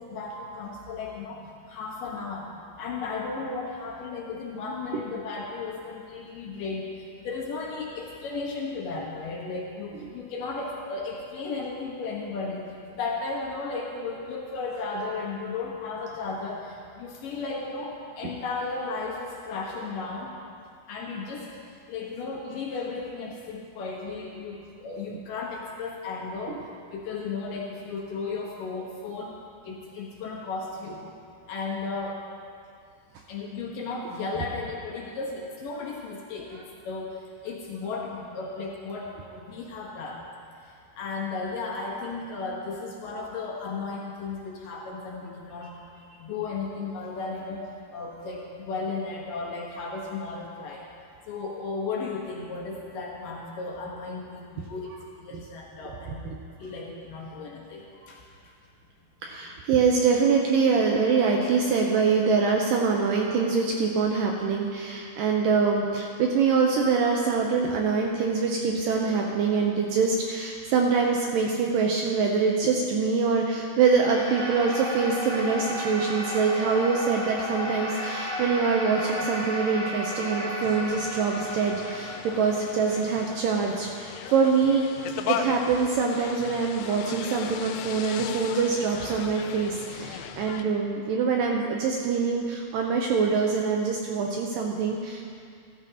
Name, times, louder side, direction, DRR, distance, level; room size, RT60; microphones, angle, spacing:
voice 1, 0.0-2.5 2.8-20.3 20.9-21.5 21.9-26.6 26.9-29.3 29.6-31.1 31.5-32.2 33.3-40.2 40.7-45.8 46.2-50.9 51.3-56.3 56.6-58.5 90.1-90.2, left 4 dB, 65° left, -2 dB, 2.6 m, -35 dB
voice 2, 59.2-84.8 85.3-95.2, right 5 dB, 80° right, 0 dB, 2.1 m, -24 dB
sound 1, 74.0-84.5, equal, 10° left, 2.9 m, -34 dB
sound 2, 80.6-90.6, left 8 dB, 85° left, 2.5 m, -37 dB
14.5 x 13.5 x 2.8 m, 2.3 s
omnidirectional pair, 4.6 m